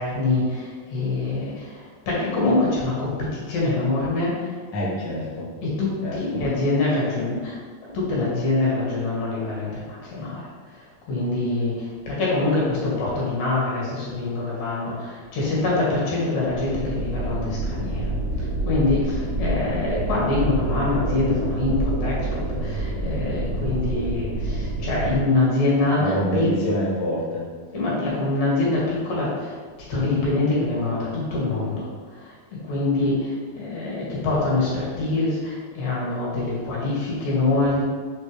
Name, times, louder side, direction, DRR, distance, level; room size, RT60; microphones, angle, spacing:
voice 1, 0.0-4.5 5.6-7.6 7.9-18.1 18.4-26.5 27.7-29.6 29.9-37.8, left 2 dB, 65° left, -6 dB, 3.3 m, -25 dB
voice 2, 4.7-5.5 6.0-6.4 26.0-27.5, equal, 90° left, -6 dB, 0.8 m, -26 dB
sound 1, 16.5-25.2, right 2 dB, 75° right, 1.5 m, -27 dB
6.8 x 4.4 x 3.2 m, 1.5 s
omnidirectional pair, 4.4 m